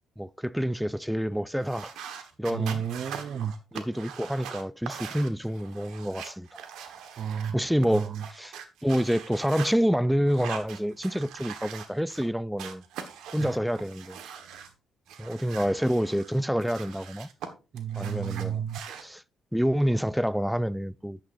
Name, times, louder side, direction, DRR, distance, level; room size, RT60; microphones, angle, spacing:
voice 1, 0.2-1.9 2.4-2.8 3.7-6.5 7.5-8.5 8.8-12.8 13.3-14.2 15.2-17.3 18.0-18.6 19.0-19.2 19.5-21.2, equal, ahead, 0.4 m, -27 dB
sound 1, 1.6-7.5 7.8-9.7 10.3-12.3 12.6-14.7 15.1-17.5 17.8-19.0, right 8 dB, 85° right, 1.3 m, -42 dB
voice 2, 2.5-3.5 7.2-7.6 7.9-8.2 13.4-13.5 17.7-18.8, right 9 dB, 55° right, 0.5 m, -32 dB
11.0 x 8.9 x 2.6 m
cardioid pair, 90°, 0 cm